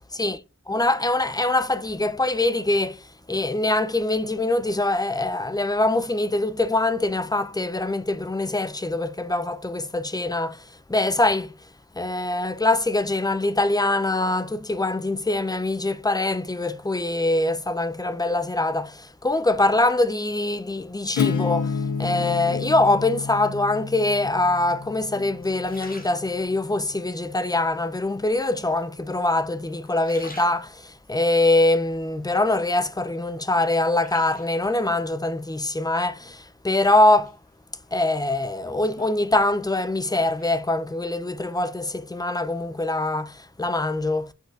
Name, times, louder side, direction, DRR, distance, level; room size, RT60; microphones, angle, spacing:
voice 1, 0.7-11.7 12.0-37.4 37.9-44.3, left 2 dB, 15° left, 0.4 m, -23 dB
Acoustic guitar / Strum, 21.2-26.7, left 5 dB, 80° left, 0.5 m, -30 dB
sound 1, 22.0-23.1 23.8-24.3 24.9-26.8 27.3-28.0 28.8-29.4 29.8-31.1 31.6-32.8 33.2-34.8 36.2-36.8 37.2-39.9 40.1-40.6, left 1 dB, 30° left, 1.0 m, -46 dB
5.2 x 3.9 x 2.4 m
wide cardioid pair, 65°, 30 cm